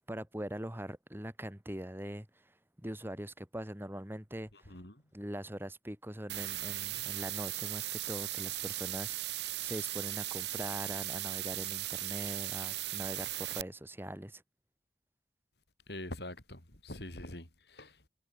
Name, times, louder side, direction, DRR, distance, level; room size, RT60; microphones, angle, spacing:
voice 1, 0.1-2.3 2.8-4.8 5.1-14.4, right 1 dB, 15° right, 2.4 m, -42 dB
voice 2, 4.5-5.0 15.9-18.1, left 1 dB, 65° left, 5.1 m, -45 dB
sound 1, 6.3-13.6, right 15 dB, 75° right, 1.3 m, -37 dB
head